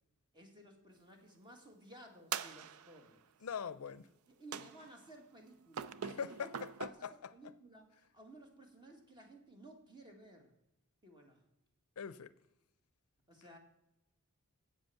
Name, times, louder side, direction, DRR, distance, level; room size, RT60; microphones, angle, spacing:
voice 1, 0.3-3.5 4.3-6.0 6.8-10.5 11.0-11.4 13.3-13.6, right 1 dB, 20° right, 2.0 m, -57 dB
sound 1, 2.3-3.1 4.5-5.1 5.7-6.9, right 8 dB, 85° right, 0.5 m, -43 dB
voice 2, 3.4-4.1 6.0-7.3 12.0-12.3, left 6 dB, 90° left, 0.5 m, -42 dB
8.3 x 7.9 x 7.0 m
head